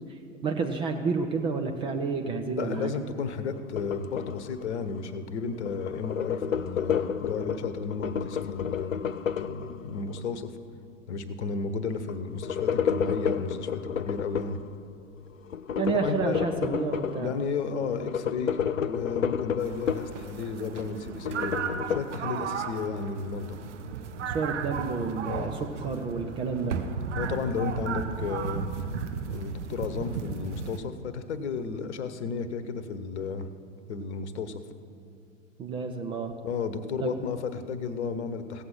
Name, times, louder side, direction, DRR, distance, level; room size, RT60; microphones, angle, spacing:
voice 1, 0.4-2.9 15.8-17.3 24.3-26.7 35.6-36.3 37.0-37.1, right 4 dB, 15° right, 4 dB, 0.4 m, -30 dB
voice 2, 2.5-9.0 9.4-10.5 11.1-14.6 15.9-16.4 17.2-23.6 25.2-25.5 27.1-28.7 29.3-33.5 33.9-34.6 36.4-38.6, left 5 dB, 60° left, 11 dB, 1.0 m, -33 dB
sound 1, 3.5-5.2 5.5-10.2 12.1-14.6 15.5-17.5 17.8-20.2 20.6-22.0, left 7 dB, 85° left, 0.5 m, -31 dB
sound 2, 19.6-30.8, right 6 dB, 65° right, 1.0 m, -35 dB
16.0 x 7.7 x 5.9 m, 2.5 s
figure-of-eight pair, 95°, 39 cm